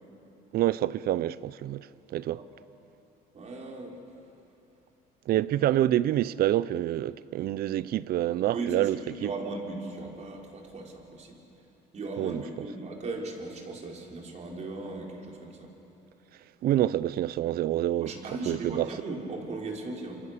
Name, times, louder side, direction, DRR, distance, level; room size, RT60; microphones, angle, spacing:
voice 1, 0.5-2.4 5.3-9.3 12.2-12.4 16.6-18.1 18.5-18.9, right 13 dB, 65° right, 0.6 m, -27 dB
voice 2, 3.3-4.0 8.5-11.7 11.9-15.7 18.0-20.2, right 2 dB, 45° right, 4.6 m, -38 dB
28.0 x 26.5 x 6.8 m
cardioid pair, 110°, 17 cm